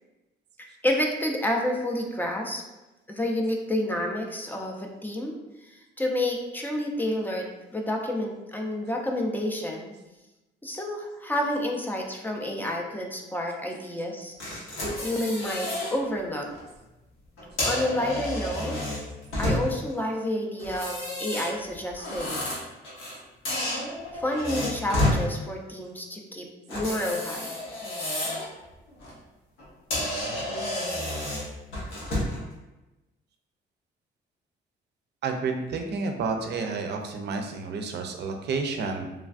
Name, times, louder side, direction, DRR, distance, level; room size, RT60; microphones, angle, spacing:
voice 1, 0.6-2.6 3.1-5.4 5.6-9.9 10.6-14.4 15.0-16.5 17.6-18.8 19.4-22.5 24.1-27.6, left 1 dB, 10° left, 1 dB, 0.4 m, -29 dB
sound 1, 14.4-15.9 16.4-16.6 17.4-19.9 20.6-23.2 23.4-25.2 26.7-28.5 28.9-29.1 29.6-29.7 29.9-32.4, left 1 dB, 90° left, 1.0 m, -30 dB
voice 2, 35.2-39.1, right 4 dB, 60° right, 4 dB, 0.5 m, -30 dB
3.2 x 2.2 x 2.5 m, 1.0 s
cardioid pair, 90°, 20 cm